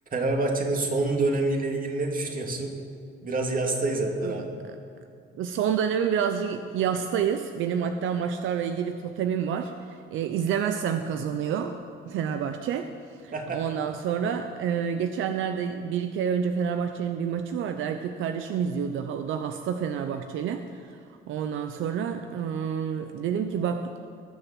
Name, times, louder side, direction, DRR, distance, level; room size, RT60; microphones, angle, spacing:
voice 1, 0.1-2.7 3.2-4.6 13.3-13.8, right 2 dB, 45° right, 2 dB, 2.4 m, -27 dB
voice 2, 5.4-11.8 12.1-12.9 13.2-21.0 21.3-23.9, right 7 dB, 85° right, 7 dB, 0.7 m, -28 dB
19.5 x 7.0 x 7.3 m, 2.3 s
cardioid pair, 90°, 20 cm